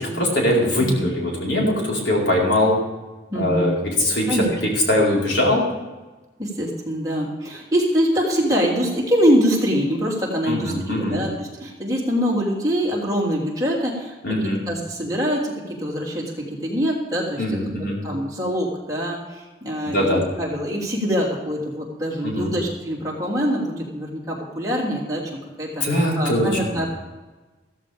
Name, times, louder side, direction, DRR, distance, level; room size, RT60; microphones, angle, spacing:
voice 1, 0.0-2.7 3.3-4.4 4.9-5.6 10.5-11.2 14.2-14.6 17.4-18.0 19.8-20.2 22.2-22.5 25.8-26.5, left 1 dB, 85° left, -3 dB, 4.6 m, -21 dB
voice 2, 3.3-3.7 4.3-4.5 6.4-17.6 18.0-25.3 25.6-26.9, equal, 20° right, -4 dB, 3.1 m, -24 dB
15.0 x 14.0 x 3.6 m, 1.2 s
head